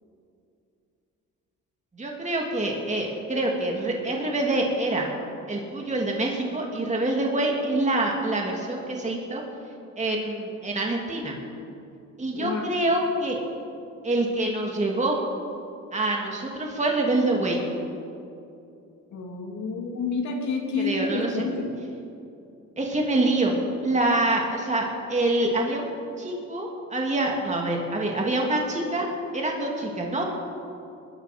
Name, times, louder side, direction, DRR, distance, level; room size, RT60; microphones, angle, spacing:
voice 1, 1.9-5.1 5.5-9.4 10.0-11.4 12.2-13.4 14.0-15.2 15.9-17.6 20.8-21.4 22.8-23.6 23.8-29.1 29.3-30.2, right 2 dB, 25° right, 0 dB, 2.6 m, -26 dB
voice 2, 19.1-21.7, left 4 dB, 70° left, 1 dB, 2.9 m, -29 dB
20.0 x 12.5 x 5.2 m, 2.6 s
cardioid pair, 90°, 30 cm